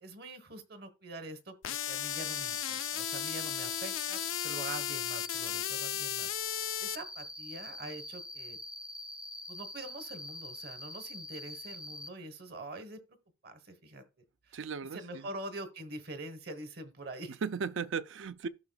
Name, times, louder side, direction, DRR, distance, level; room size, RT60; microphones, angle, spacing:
voice 1, 0.0-6.3 6.5-8.6 9.5-13.0 13.4-14.0 14.5-14.6 14.9-17.4, right 2 dB, 50° right, 1.2 m, -45 dB
sound 1, 1.6-7.0, left 12 dB, 80° left, 0.5 m, -35 dB
Cricket, 2.1-12.1, left 1 dB, 5° right, 0.4 m, -45 dB
voice 2, 14.5-15.3 17.3-18.5, right 5 dB, 70° right, 0.5 m, -36 dB
14.5 x 5.9 x 2.3 m
head